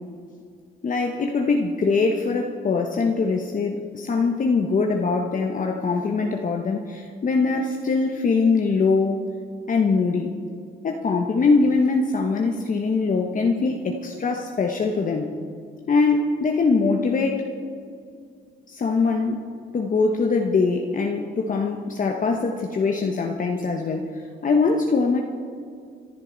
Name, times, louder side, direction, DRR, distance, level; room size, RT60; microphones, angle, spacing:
voice 1, 0.8-9.3 9.7-10.3 10.8-15.3 15.9-17.5 18.7-19.4 19.7-25.2, left 4 dB, 40° left, 2 dB, 1.1 m, -22 dB
25.5 x 11.0 x 4.0 m, 2.2 s
cardioid pair, 90°, 20 cm